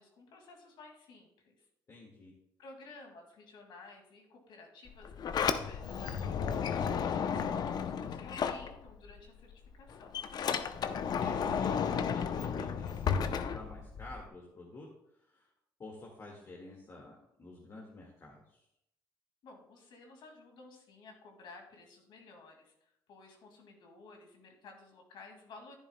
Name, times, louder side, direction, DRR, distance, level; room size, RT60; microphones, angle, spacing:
voice 1, 0.0-1.6 2.6-10.2 19.4-25.8, left 3 dB, 75° left, 2 dB, 2.1 m, -54 dB
voice 2, 1.9-2.3 11.2-15.5 15.8-18.6, left 2 dB, 40° left, -2 dB, 1.8 m, -50 dB
Sliding door, 4.9-9.2 9.5-14.2, left 7 dB, 60° left, 0.6 m, -33 dB
11.0 x 10.0 x 2.2 m, 0.79 s
cardioid pair, 85°, 8 cm